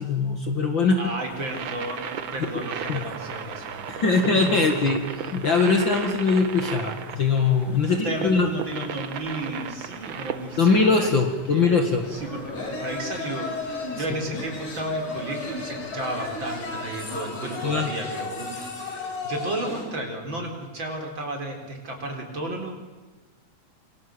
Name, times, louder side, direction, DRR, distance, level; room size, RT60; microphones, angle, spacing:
voice 1, 0.0-1.1 2.9-3.0 3.9-5.0 5.3-8.5 10.6-12.1 17.6-17.9, left 4 dB, 45° left, 4 dB, 2.4 m, -21 dB
voice 2, 1.0-4.2 4.6-4.7 7.9-11.2 11.5-11.8 12.1-22.7, right 1 dB, 40° right, 2 dB, 4.9 m, -33 dB
sound 1, 1.2-17.1, right 1 dB, ahead, 4.4 m, -48 dB
sound 2, 1.3-10.9, right 8 dB, 55° right, 1.5 m, -36 dB
sound 3, 12.0-19.9, left 3 dB, 85° left, 6.0 m, -34 dB
27.0 x 25.0 x 7.9 m, 1.2 s
omnidirectional pair, 3.4 m